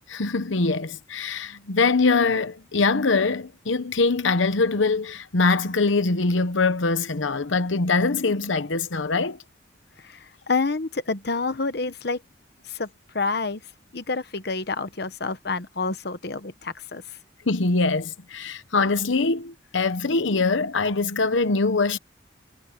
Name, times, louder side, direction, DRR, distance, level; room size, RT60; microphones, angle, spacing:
voice 1, 0.1-9.4 17.5-22.0, left 3 dB, 80° left, 1.0 m, -23 dB
voice 2, 10.0-12.2 12.6-12.9 13.1-13.6 13.9-17.2, left 4 dB, 55° left, 1.0 m, -28 dB
head